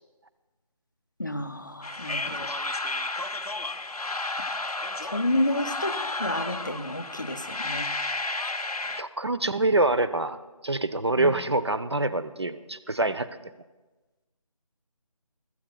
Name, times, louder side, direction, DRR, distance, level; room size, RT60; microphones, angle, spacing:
voice 1, 1.2-2.5 4.4-7.9 11.2-11.3, left 1 dB, 35° left, 9 dB, 0.6 m, -31 dB
sound 1, 1.8-9.0, left 2 dB, 90° left, 0.7 m, -32 dB
voice 2, 9.0-13.3, right 2 dB, 45° right, 13 dB, 0.6 m, -25 dB
23.0 x 13.5 x 2.3 m, 1.2 s
figure-of-eight pair, 165°, 19 cm